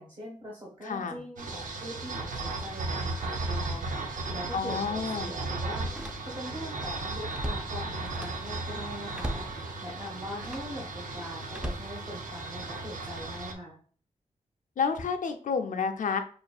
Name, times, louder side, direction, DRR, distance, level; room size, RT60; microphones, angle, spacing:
voice 1, 0.0-6.1 6.3-13.8, equal, 35° right, -5 dB, 1.2 m, -42 dB
voice 2, 0.9-1.2 4.5-5.3 14.8-16.2, left 5 dB, 85° left, 6 dB, 0.6 m, -30 dB
sound 1, 1.4-13.5, right 2 dB, 85° right, 0.7 m, -35 dB
Slam, 4.4-4.5 5.8-6.6 6.9-8.5 9.1-9.6 10.3-10.8 11.5-12.6 13.2-13.5, equal, 5° right, 0.5 m, -39 dB
5.5 x 2.5 x 2.3 m, 0.43 s
wide cardioid pair, 95°, 13 cm